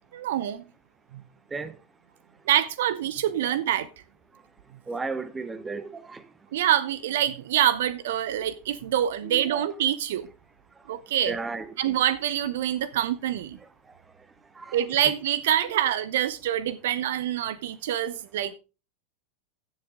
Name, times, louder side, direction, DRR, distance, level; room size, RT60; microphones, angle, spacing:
voice 1, 0.1-0.6 2.5-3.9 6.5-10.3 10.9-11.3 11.8-13.6 14.7-18.5, right 11 dB, 55° right, 0.6 m, -26 dB
voice 2, 4.9-6.2 9.2-9.7 11.3-11.9 14.6-14.8, right 4 dB, 15° right, 1.0 m, -34 dB
15.5 x 7.2 x 3.7 m
figure-of-eight pair, 90°, 0 cm